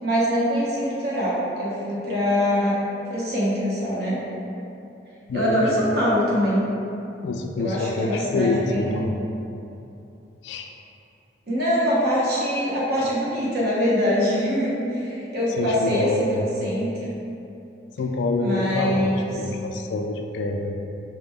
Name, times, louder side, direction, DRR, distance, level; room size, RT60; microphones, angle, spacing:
voice 1, 0.0-2.8 3.1-4.2 5.3-6.6 7.6-9.1 11.5-16.9 18.4-19.3, equal, 60° right, -7 dB, 1.1 m, -23 dB
voice 2, 5.3-5.8 7.2-9.2 10.4-10.7 15.6-16.4 18.0-20.7, left 3 dB, 70° left, 4 dB, 0.3 m, -26 dB
4.9 x 2.1 x 3.6 m, 2.8 s
head